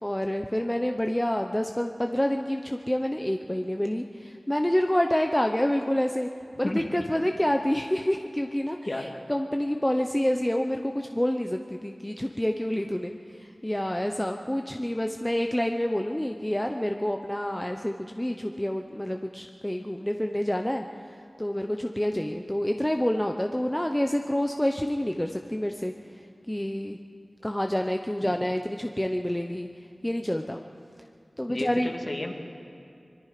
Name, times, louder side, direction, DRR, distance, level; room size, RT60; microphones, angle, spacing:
voice 1, 0.0-6.3 6.6-8.8 9.3-13.1 13.4-20.8 21.4-25.9 26.5-27.0 27.4-29.7 30.0-30.6 31.4-31.9, left 1 dB, 15° left, 4 dB, 0.8 m, -27 dB
voice 2, 6.6-7.0 8.9-9.1 28.2-28.3 31.5-32.3, left 1 dB, 45° left, 2 dB, 2.3 m, -32 dB
24.0 x 22.0 x 5.0 m, 2.4 s
wide cardioid pair, 65°, 0 cm